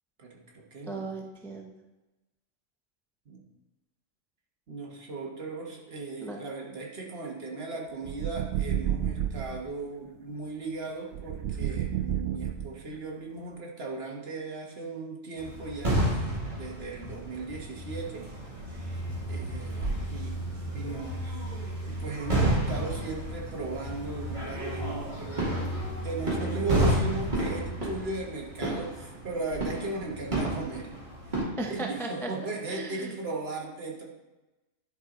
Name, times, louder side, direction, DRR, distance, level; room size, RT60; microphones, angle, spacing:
voice 1, 0.2-1.1 3.2-3.4 4.7-18.3 18.6-21.5 21.8-25.8 26.0-30.9 31.3-31.4 31.7-34.0, right 3 dB, 50° right, -1 dB, 1.5 m, -37 dB
voice 2, 0.9-1.7 6.2-6.4 31.4-32.3 32.7-33.1, right 2 dB, 5° left, 1 dB, 0.4 m, -36 dB
sound 1, 8.0-9.6 11.1-13.0, right 10 dB, 65° right, 0.9 m, -30 dB
sound 2, 15.4-31.4, right 1 dB, 35° right, 2.3 m, -31 dB
10.5 x 4.6 x 3.8 m, 1.1 s
omnidirectional pair, 1.4 m